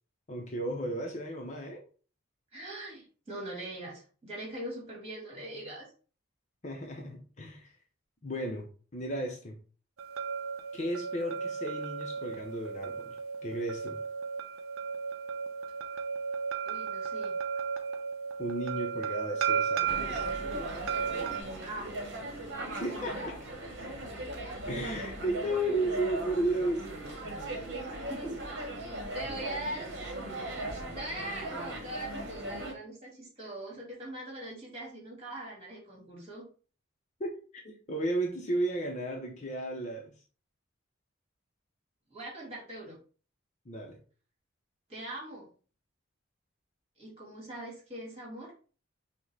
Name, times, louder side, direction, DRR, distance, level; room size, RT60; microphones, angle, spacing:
voice 1, 0.3-1.8 6.6-7.7 8.2-8.7 8.9-9.6 10.7-13.2 13.4-14.0 18.4-20.3 22.7-23.4 24.7-26.9 37.2-37.4 37.6-40.1 43.7-44.0, right 1 dB, 35° left, 0.6 m, -34 dB
voice 2, 2.5-5.9 16.6-17.3 21.6-21.9 28.1-28.7 29.1-30.1 30.9-36.5 42.1-43.0 44.9-45.5 47.0-48.5, right 1 dB, 30° right, 1.7 m, -41 dB
sound 1, 10.0-21.4, right 6 dB, 80° right, 0.5 m, -34 dB
sound 2, 19.9-32.7, right 1 dB, 55° right, 1.0 m, -38 dB
6.0 x 2.1 x 3.2 m
head